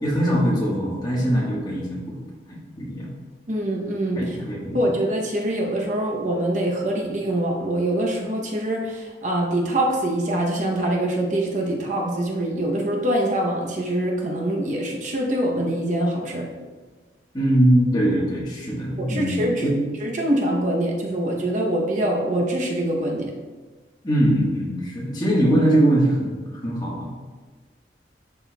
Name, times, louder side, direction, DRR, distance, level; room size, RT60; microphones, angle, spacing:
voice 1, 0.0-2.2 2.5-3.1 4.2-4.8 17.3-19.7 24.0-26.4 26.6-27.1, right 1 dB, 25° left, -4 dB, 1.3 m, -22 dB
voice 2, 3.5-4.2 4.7-16.5 19.1-19.7 20.0-23.3, right 1 dB, 45° right, -1 dB, 0.8 m, -24 dB
11.0 x 4.4 x 2.3 m, 1.4 s
head